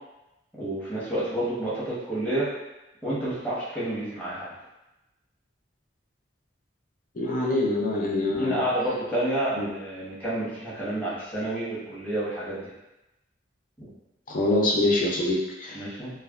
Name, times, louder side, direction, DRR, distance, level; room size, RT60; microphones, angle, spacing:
voice 1, 0.6-2.5 3.0-4.5 8.3-12.7 13.8-13.9 15.7-16.1, right 1 dB, 10° left, -10 dB, 0.9 m, -29 dB
voice 2, 7.2-8.6 9.6-9.7 14.3-15.8, left 2 dB, 45° left, -3 dB, 0.5 m, -25 dB
3.2 x 2.1 x 2.3 m, 0.96 s
head